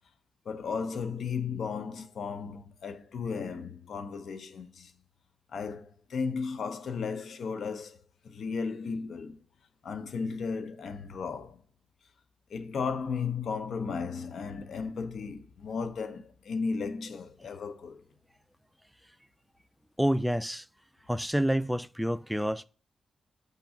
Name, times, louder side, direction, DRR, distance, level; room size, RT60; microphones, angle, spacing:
voice 1, 0.5-4.9 5.5-9.4 9.8-11.6 12.5-18.0, left 5 dB, 70° left, 0.7 m, -35 dB
voice 2, 20.0-20.7 21.1-22.6, equal, ahead, 0.4 m, -28 dB
5.3 x 3.6 x 5.0 m
cardioid pair, 55°, 0 cm